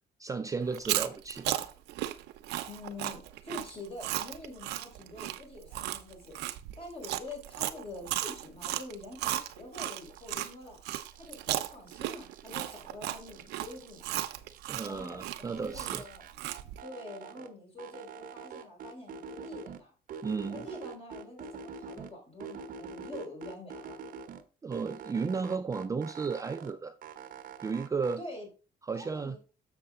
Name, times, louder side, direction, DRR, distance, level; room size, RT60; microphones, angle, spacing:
voice 1, 0.2-1.7 14.7-16.1 20.2-20.6 24.6-27.0 27.6-28.2 28.8-29.4, right 5 dB, 20° right, 0.4 m, -34 dB
Chewing mastication, 0.7-10.5 10.8-16.8, right 14 dB, 80° right, 0.7 m, -35 dB
voice 2, 2.7-6.4 6.8-10.8 11.1-14.0 14.9-16.3 16.6-19.9 20.5-24.0 28.2-28.5 28.9-29.4, left 2 dB, 35° left, 4.2 m, -46 dB
sound 1, 10.0-10.5 10.9-12.9 13.2-15.2 15.5-17.5 17.8-19.8 20.1-22.1 22.4-24.4 24.7-26.7 27.0-28.2, right 5 dB, 55° right, 0.9 m, -45 dB
6.7 x 6.7 x 3.7 m
cardioid pair, 110°, 17 cm